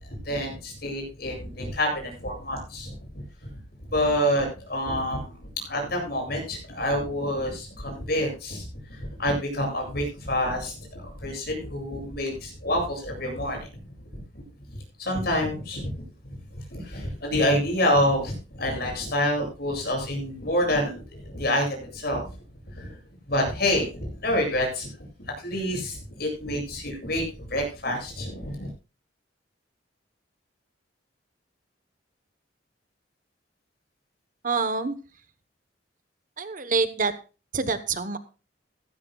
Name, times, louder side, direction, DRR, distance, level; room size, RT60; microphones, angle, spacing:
voice 1, 0.2-3.5 3.9-5.4 5.6-13.7 14.1-14.4 15.0-15.9 16.5-22.3 22.7-22.9 23.3-24.9 25.2-28.7, left 1 dB, 55° left, 2 dB, 8.0 m, -27 dB
voice 2, 34.4-35.0 36.4-37.1 37.5-38.2, right 4 dB, 45° right, 12 dB, 1.1 m, -26 dB
17.0 x 15.0 x 2.3 m, 0.32 s
head